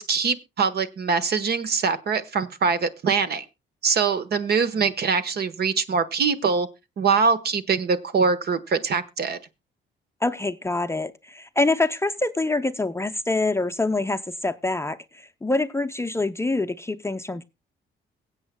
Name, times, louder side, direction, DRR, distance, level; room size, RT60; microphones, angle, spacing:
voice 1, 0.0-3.4 3.8-6.7 7.0-9.4, right 5 dB, 55° right, 1.2 m, -23 dB
voice 2, 10.2-17.4, left 2 dB, 15° left, 0.6 m, -25 dB
22.5 x 8.1 x 2.2 m
cardioid pair, 90°, 20 cm